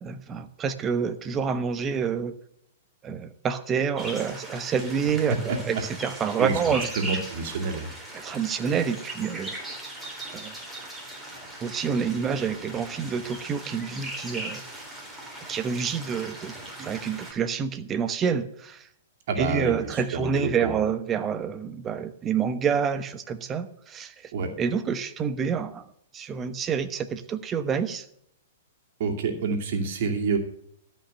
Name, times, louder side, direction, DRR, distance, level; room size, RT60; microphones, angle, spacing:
voice 1, 0.0-2.3 3.0-6.9 8.1-9.6 10.3-10.6 11.6-14.6 15.5-18.9 19.4-24.3 24.6-25.8 26.1-28.1, right 6 dB, 25° right, 10 dB, 1.1 m, -28 dB
sound 1, 4.0-17.3, right 1 dB, 5° right, 3.8 m, -39 dB
voice 2, 6.4-7.9 19.3-20.7 24.3-24.5 29.0-30.4, right 4 dB, 55° right, 3 dB, 2.5 m, -28 dB
13.0 x 5.6 x 7.9 m, 0.70 s
hypercardioid pair, 110°, 0 cm